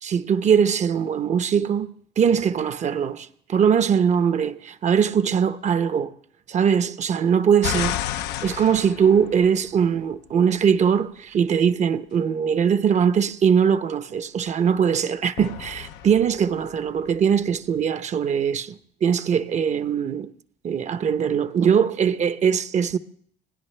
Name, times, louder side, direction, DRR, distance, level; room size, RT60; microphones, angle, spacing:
voice 1, 0.0-6.1 6.5-8.0 8.4-20.3 20.6-23.0, right 7 dB, 45° right, 0.8 m, -21 dB
sound 1, 7.6-10.0 15.4-17.4, left 12 dB, 90° left, 0.6 m, -32 dB
25.0 x 17.0 x 3.3 m
cardioid pair, 110°, 17 cm